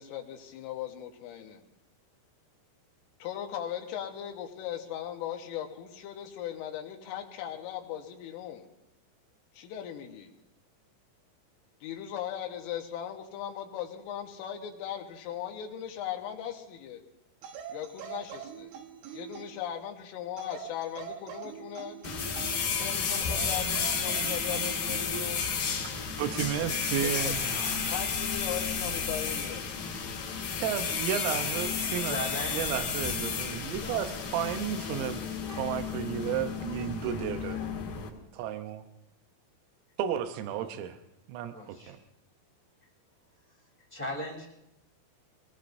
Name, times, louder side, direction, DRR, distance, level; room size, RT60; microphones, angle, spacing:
voice 1, 0.0-1.6 3.2-8.6 9.6-10.3 11.8-17.0 17.7-18.7 19.1-22.0 22.8-25.5 27.0-27.7 27.9-29.7, left 10 dB, 80° left, 4 dB, 3.7 m, -38 dB
sound 1, 17.4-19.7 20.4-22.7 23.1-25.3 26.4-26.7, right 9 dB, 70° right, 3.5 m, -43 dB
sound 2, 22.0-38.1, left 6 dB, 55° left, 2.9 m, -32 dB
voice 2, 26.2-28.0 30.6-32.2 32.5-35.2 35.5-37.6 38.3-38.9 40.0-41.0 41.3-42.0, right 10 dB, 85° right, 8 dB, 3.6 m, -33 dB
voice 3, 32.0-32.7 33.8-34.0 41.5-42.0 43.9-44.5, equal, 5° left, -3 dB, 1.7 m, -37 dB
24.5 x 20.0 x 2.6 m, 0.84 s
omnidirectional pair, 5.9 m